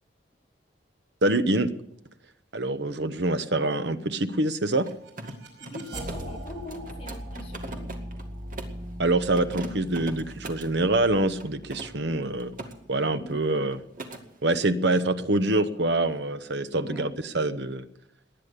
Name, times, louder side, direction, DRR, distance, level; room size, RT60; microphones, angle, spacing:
voice 1, 1.2-1.7 2.5-4.9 9.0-12.5 12.9-13.8 14.4-17.8, right 2 dB, 65° right, 10 dB, 1.1 m, -25 dB
sound 1, 4.4-13.4, equal, 85° right, 5.3 m, -41 dB
Mechanisms, 4.7-8.8 9.3-10.7 11.4-12.7 13.0-13.4 13.7-14.2, right 2 dB, 45° right, 2.1 m, -41 dB
voice 2, 5.6-7.9 13.2-13.5 16.8-17.1, left 1 dB, 30° left, 1 dB, 2.4 m, -42 dB
19.0 x 10.5 x 6.8 m, 0.77 s
head